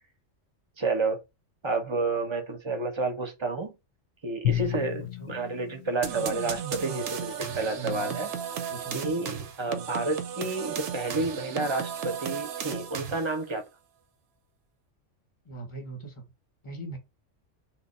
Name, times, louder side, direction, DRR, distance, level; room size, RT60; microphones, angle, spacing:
voice 1, 0.8-1.2 1.6-3.8 4.2-8.3 8.9-13.6, right 3 dB, 35° right, 0.5 m, -30 dB
Drum, 4.4-6.8, left 12 dB, 70° left, 0.8 m, -32 dB
voice 2, 5.0-5.4 7.8-8.3 8.7-9.1 15.4-16.3 16.6-17.0, right 2 dB, 25° left, 0.9 m, -40 dB
sound 1, 6.0-13.4, right 8 dB, 75° right, 0.9 m, -35 dB
2.9 x 2.2 x 4.0 m
omnidirectional pair, 1.3 m